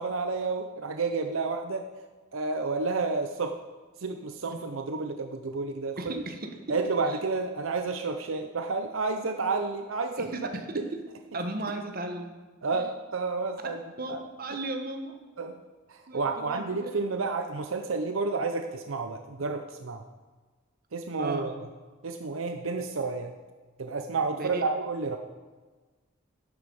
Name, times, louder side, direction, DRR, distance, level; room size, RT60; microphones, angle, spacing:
voice 1, 0.0-1.9 2.3-3.5 4.0-6.0 6.7-10.3 12.6-13.8 14.1-14.2 15.4-15.6 15.9-20.0 20.9-21.5 22.0-23.3 23.8-25.2, right 4 dB, 75° right, 6 dB, 0.7 m, -30 dB
voice 2, 6.0-6.5 7.1-7.2 10.2-11.0 11.3-12.3 12.7-12.8 14.0-15.2 16.1-16.9 21.2-21.5 24.3-24.7, right 2 dB, 45° right, 5 dB, 1.2 m, -35 dB
11.5 x 7.9 x 5.3 m, 1.3 s
head